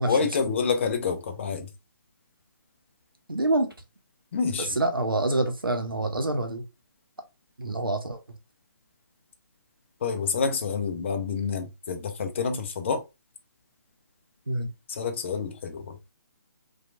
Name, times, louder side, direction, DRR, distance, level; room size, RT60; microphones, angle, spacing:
voice 1, 0.0-1.7 4.3-4.8 10.0-13.0 14.9-16.0, left 5 dB, 35° left, 0.5 m, -28 dB
voice 2, 3.3-3.7 4.6-6.6 7.6-8.2 14.5-14.7, right 2 dB, 90° right, 0.7 m, -26 dB
2.8 x 2.3 x 2.3 m
figure-of-eight pair, 145°, 11 cm